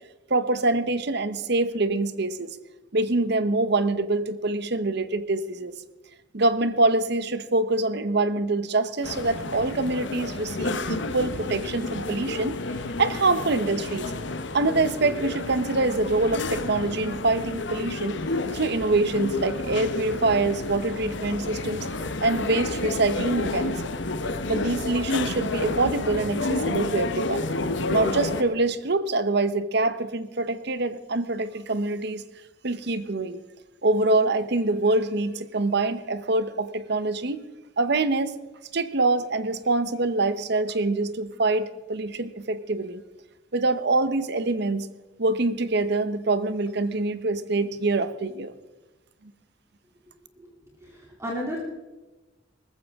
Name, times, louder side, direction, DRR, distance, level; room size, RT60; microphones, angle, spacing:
voice 1, 0.3-2.6 2.9-5.7 6.3-12.6 13.0-14.1 14.5-18.2 18.5-21.9 22.2-24.0 24.5-27.5 27.9-32.2 32.6-33.4 33.8-37.5 37.8-38.3 38.7-43.0 43.5-44.9 45.2-48.5, right 2 dB, 60° right, 13 dB, 0.9 m, -25 dB
sound 1, 9.0-28.4, left 2 dB, 65° left, 1.1 m, -30 dB
voice 2, 50.8-51.6, left 1 dB, 15° right, -2 dB, 2.9 m, -33 dB
19.5 x 14.5 x 3.6 m, 1.1 s
head